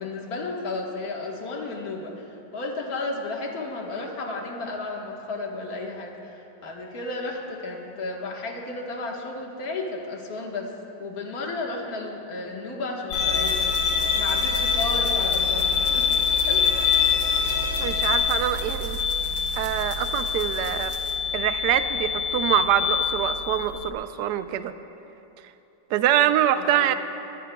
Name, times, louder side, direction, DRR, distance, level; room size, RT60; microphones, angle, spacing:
voice 1, 0.0-10.7 11.0-13.7 14.1-16.1 16.5-16.7 26.6-26.9, left 2 dB, 55° left, 0 dB, 1.9 m, -33 dB
sound 1, 13.1-23.9, left 6 dB, 85° left, 1.7 m, -25 dB
Bowed string instrument, 13.1-18.1, equal, 40° left, 1.8 m, -34 dB
sound 2, 13.3-21.2, right 3 dB, 50° right, 1.7 m, -43 dB
voice 2, 17.8-19.0 19.6-20.9 21.3-24.7 25.9-26.9, right 11 dB, 70° right, 10 dB, 1.1 m, -24 dB
21.5 x 21.0 x 2.3 m, 3.0 s
omnidirectional pair, 2.0 m